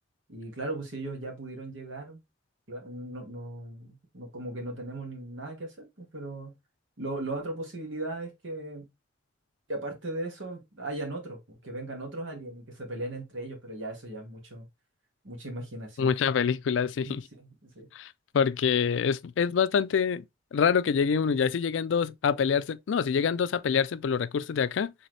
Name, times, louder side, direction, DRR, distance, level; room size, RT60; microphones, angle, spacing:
voice 1, 0.3-2.2 2.7-6.5 7.0-8.9 9.7-14.7 15.2-16.1 17.0-17.9, right 2 dB, 90° right, 1.8 m, -38 dB
voice 2, 16.0-17.2 17.9-20.2 20.5-24.9, left 6 dB, 80° left, 0.4 m, -26 dB
4.0 x 3.6 x 3.2 m
head